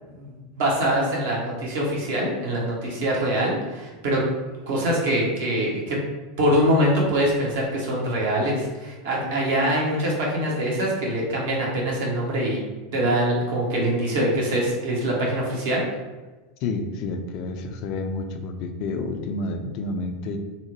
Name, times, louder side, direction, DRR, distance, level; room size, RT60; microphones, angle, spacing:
voice 1, 0.0-4.2 4.7-6.0 6.4-12.6 12.9-15.8 17.5-17.6, right 1 dB, 65° right, -3 dB, 0.8 m, -24 dB
voice 2, 16.6-20.4, left 3 dB, 50° left, 5 dB, 0.3 m, -29 dB
2.8 x 2.1 x 2.9 m, 1.2 s
figure-of-eight pair, 85°, 0 cm